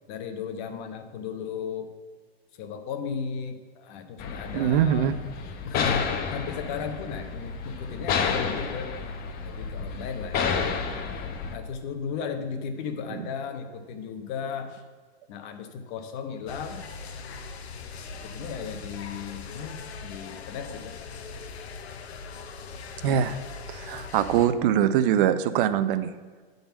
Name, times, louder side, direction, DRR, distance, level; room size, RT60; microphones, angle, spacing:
voice 1, 0.1-1.9 2.6-5.1 5.4-8.9 9.4-10.9 11.5-14.8 15.3-16.9 18.1-20.9, left 6 dB, 45° left, 7 dB, 1.1 m, -35 dB
sound 1, 4.2-11.5, left 6 dB, 30° left, 0.8 m, -30 dB
voice 2, 4.5-5.2 23.0-23.4 23.7-26.1, right 9 dB, 55° right, 12 dB, 0.6 m, -23 dB
sound 2, 16.5-24.5, left 5 dB, 80° left, 0.9 m, -40 dB
8.6 x 4.0 x 7.0 m, 1.5 s
hypercardioid pair, 125°, 32 cm